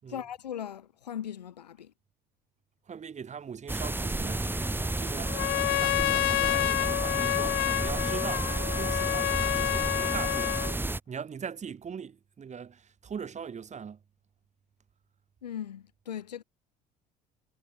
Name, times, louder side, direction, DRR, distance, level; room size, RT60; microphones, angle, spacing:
voice 1, 0.1-1.9 15.4-16.4, left 9 dB, 85° left, 4.4 m, -38 dB
voice 2, 2.9-5.4 5.7-10.5 11.1-14.0, right 7 dB, 35° right, 5.0 m, -40 dB
sound 1, 3.7-11.0, right 2 dB, 10° right, 2.7 m, -31 dB
Trumpet, 5.3-10.8, left 22 dB, 60° left, 0.8 m, -29 dB
hypercardioid pair, 65°, 20 cm